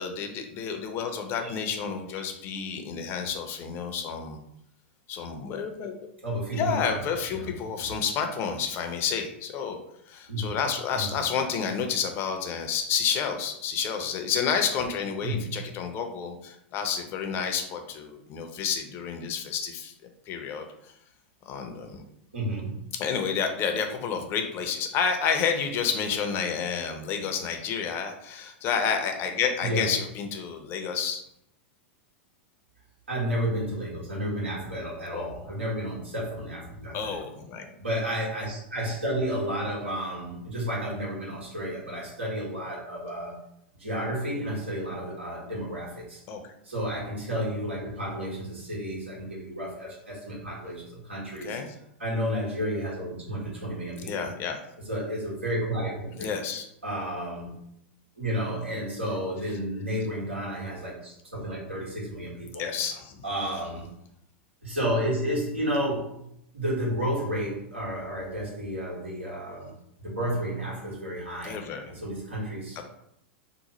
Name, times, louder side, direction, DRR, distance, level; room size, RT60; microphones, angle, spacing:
voice 1, 0.0-4.4 5.1-6.0 6.5-9.8 10.1-19.9 20.3-20.7 21.5-22.0 23.0-31.2 35.1-35.2 36.9-37.7 41.9-42.0 46.3-46.5 51.4-51.7 54.1-54.6 56.2-56.7 62.6-63.2 71.4-71.9, left 6 dB, 40° left, 5 dB, 0.6 m, -30 dB
voice 2, 6.2-7.0 7.3-7.9 10.3-10.6 10.9-11.2 15.2-15.6 22.3-22.8 29.6-29.9 33.1-37.2 37.8-43.4 43.8-46.2 46.6-51.6 52.0-54.3 54.9-56.3 56.8-57.6 58.2-62.7 63.2-63.9 64.6-66.2 66.5-71.6 71.9-72.8, equal, 85° right, -4 dB, 1.4 m, -31 dB
2.9 x 2.1 x 4.1 m, 0.77 s
hypercardioid pair, 100°, 6 cm